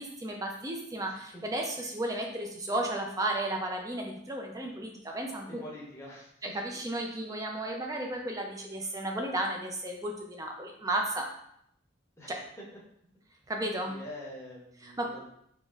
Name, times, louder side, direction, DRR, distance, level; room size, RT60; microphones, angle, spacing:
voice 1, 0.0-5.6 6.4-11.3 12.3-12.4 13.5-14.0 14.8-15.1, right 1 dB, 15° right, 1 dB, 0.4 m, -34 dB
voice 2, 5.5-6.6 12.2-12.3 13.8-15.3, left 1 dB, 15° left, -5 dB, 0.8 m, -45 dB
4.0 x 3.0 x 2.4 m, 0.73 s
head